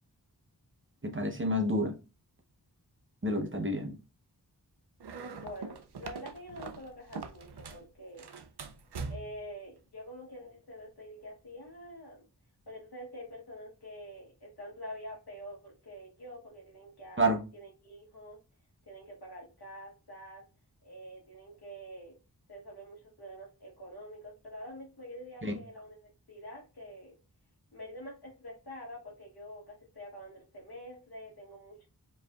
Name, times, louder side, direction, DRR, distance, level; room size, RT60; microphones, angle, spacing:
voice 1, 1.0-2.0 3.2-4.0 17.2-17.4 25.4-25.5, equal, 30° right, 0.9 m, -29 dB
sound 1, 5.0-7.9 8.2-9.5, right 4 dB, 85° right, 0.6 m, -42 dB
voice 2, 5.3-8.3 9.1-12.3 12.7-18.4 18.9-20.4 20.8-22.2 22.5-27.2 27.7-31.9, equal, 75° left, 1.2 m, -46 dB
4.9 x 3.2 x 2.3 m
wide cardioid pair, 55°, 39 cm